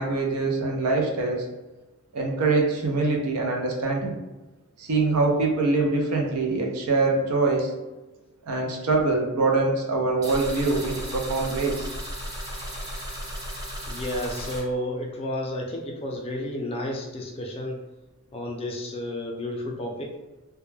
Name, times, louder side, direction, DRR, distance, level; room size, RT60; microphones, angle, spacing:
voice 1, 0.0-1.5 2.1-4.2 4.8-7.7 8.5-11.9, right 3 dB, 80° right, 1 dB, 0.5 m, -24 dB
sound 1, 10.2-14.6, equal, 15° right, 0.6 m, -35 dB
voice 2, 13.9-17.8 18.3-20.1, left 1 dB, 25° left, 1 dB, 0.4 m, -31 dB
2.2 x 2.1 x 3.1 m, 1.1 s
head